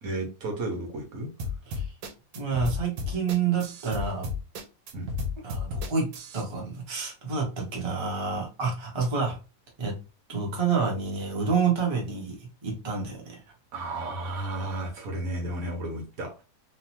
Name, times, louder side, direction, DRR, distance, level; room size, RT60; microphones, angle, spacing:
voice 1, 0.0-1.3 4.9-5.1 13.7-16.4, right 2 dB, 65° right, 1 dB, 1.2 m, -33 dB
sound 1, 1.4-6.4, left 4 dB, 85° right, 1.2 m, -33 dB
voice 2, 2.3-4.3 5.4-9.4 9.8-10.0 10.3-13.4, right 5 dB, 25° right, -1 dB, 0.7 m, -28 dB
3.1 x 2.1 x 2.9 m, 0.31 s
omnidirectional pair, 1.7 m